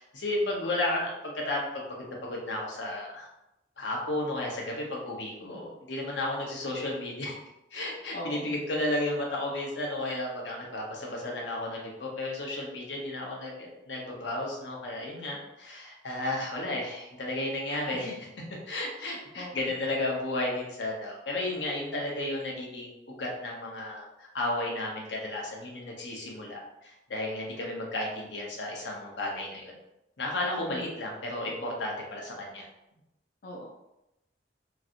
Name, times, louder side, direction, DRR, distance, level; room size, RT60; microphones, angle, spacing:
voice 1, 0.0-3.3 3.8-7.3 7.7-18.2 18.7-29.7 30.2-32.7, left 1 dB, 85° left, -2 dB, 0.8 m, -33 dB
voice 2, 8.1-8.5 18.1-18.2 19.4-19.5 30.7-30.8 33.4-33.7, equal, 55° left, -2 dB, 0.4 m, -39 dB
3.1 x 2.7 x 2.5 m, 0.90 s
head